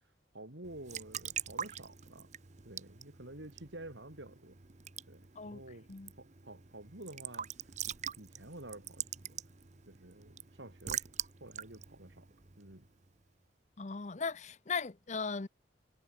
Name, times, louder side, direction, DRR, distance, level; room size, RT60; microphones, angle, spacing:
voice 1, 0.3-2.3 2.6-4.6 5.1-5.9 6.2-7.5 8.2-9.4 9.9-11.1 11.4-12.3 12.6-12.9, right 1 dB, 75° right, 3.8 m, -50 dB
Raindrop / Drip / Trickle dribble, 0.6-13.1, right 9 dB, 40° right, 0.9 m, -44 dB
voice 2, 13.8-15.5, left 5 dB, 40° left, 0.6 m, -37 dB
head